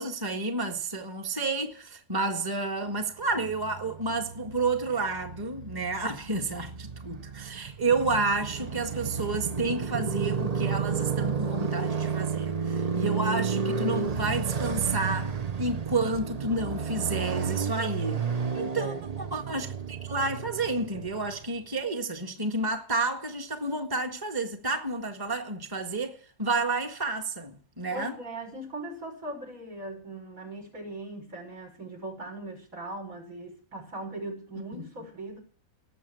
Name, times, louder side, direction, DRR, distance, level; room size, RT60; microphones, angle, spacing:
voice 1, 0.0-18.2 18.5-28.2, right 3 dB, 15° right, 1.6 m, -30 dB
Motorcycle, 3.3-21.5, right 6 dB, 35° right, 0.8 m, -32 dB
voice 2, 18.5-19.4 27.9-35.4, right 2 dB, 65° right, 6.4 m, -40 dB
19.5 x 7.7 x 9.0 m
omnidirectional pair, 1.5 m